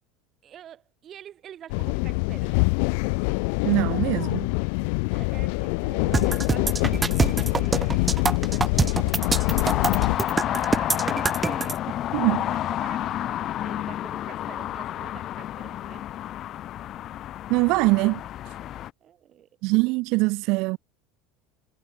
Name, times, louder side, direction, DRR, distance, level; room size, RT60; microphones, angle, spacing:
voice 1, 0.4-2.7 5.1-9.0 9.4-12.0 12.4-16.1 19.0-19.5, right 10 dB, 40° right, 7.9 m, -45 dB
sound 1, 1.7-10.2, left 34 dB, 70° left, 0.6 m, -25 dB
voice 2, 3.6-4.5 12.1-12.4 17.5-18.2 19.6-20.8, right 25 dB, 65° right, 0.5 m, -22 dB
sound 2, 6.1-11.7, right 4 dB, 20° right, 1.6 m, -25 dB
sound 3, 9.2-18.9, left 12 dB, 45° left, 4.3 m, -30 dB
supercardioid pair, 105°, 0 cm